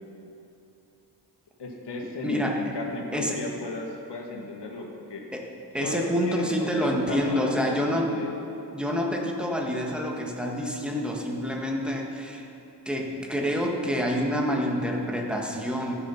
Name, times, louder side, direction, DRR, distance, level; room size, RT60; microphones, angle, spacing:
voice 1, 1.6-5.3 5.8-8.3, left 2 dB, 75° left, 0 dB, 1.9 m, -35 dB
voice 2, 2.2-2.7 3.1-3.4 5.3-5.5 5.7-8.1 8.7-12.5 12.8-15.9, equal, ahead, -1 dB, 1.5 m, -27 dB
15.0 x 6.8 x 5.7 m, 2.7 s
wide cardioid pair, 115°, 41 cm